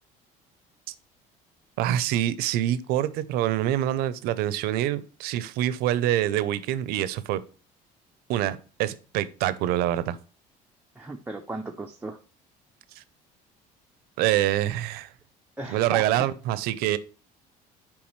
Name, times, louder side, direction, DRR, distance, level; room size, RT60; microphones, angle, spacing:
voice 1, 1.8-7.4 8.3-10.2 14.2-15.1 15.7-17.0, right 12 dB, 75° right, 0.6 m, -25 dB
voice 2, 11.0-12.2 15.6-16.3, right 3 dB, 10° right, 0.4 m, -36 dB
7.2 x 4.7 x 3.1 m
cardioid pair, 150°, 16 cm